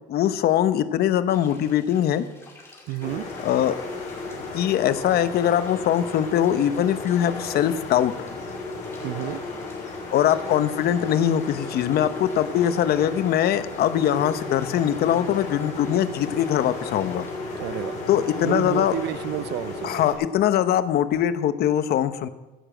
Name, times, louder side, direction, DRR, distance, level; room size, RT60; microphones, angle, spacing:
voice 1, 0.1-2.3 3.4-3.8 4.5-8.1 10.1-17.3 18.1-18.9 19.8-22.3, left 10 dB, 65° left, 12 dB, 0.9 m, -22 dB
sound 1, 1.3-17.4, left 1 dB, 15° left, 5.1 m, -49 dB
voice 2, 2.9-3.2 9.0-9.4 17.6-18.0 18.4-20.1, right 15 dB, 75° right, 18 dB, 0.5 m, -30 dB
sound 2, 3.0-20.1, left 3 dB, 45° left, 4.7 m, -34 dB
15.0 x 7.0 x 7.7 m, 1.1 s
cardioid pair, 110°, 17 cm